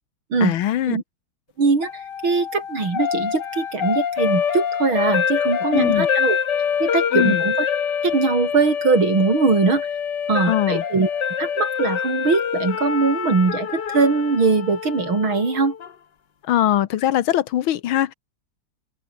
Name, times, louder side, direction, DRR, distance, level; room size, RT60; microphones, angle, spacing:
voice 1, 0.4-1.0 5.7-6.1 7.1-7.4 10.5-10.8 16.4-18.1, left 12 dB, 80° left, 1.8 m, -21 dB
voice 2, 1.6-1.9 2.2-6.4 6.8-7.7 8.0-9.9 10.3-11.1 11.4-15.7, right 4 dB, 80° right, 5.0 m, -21 dB
sound 1, 1.8-15.9, left 7 dB, 60° left, 2.1 m, -25 dB
omnidirectional pair, 2.2 m